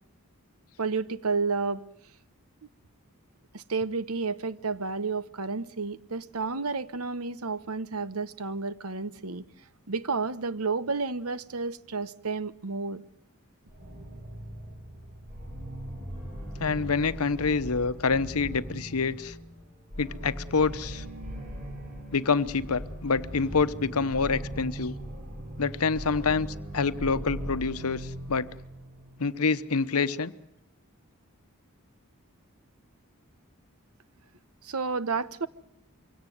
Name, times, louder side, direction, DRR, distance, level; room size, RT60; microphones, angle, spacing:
voice 1, 0.8-1.8 3.5-9.4 9.9-13.0 34.6-35.5, right 4 dB, 80° right, 1.1 m, -31 dB
sound 1, 13.7-29.4, equal, 40° right, 7.0 m, -39 dB
voice 2, 16.6-19.3 20.0-21.0 22.1-25.0 25.6-26.5 26.7-28.5 29.2-30.3, left 4 dB, 85° left, 0.9 m, -27 dB
23.5 x 17.0 x 9.3 m
head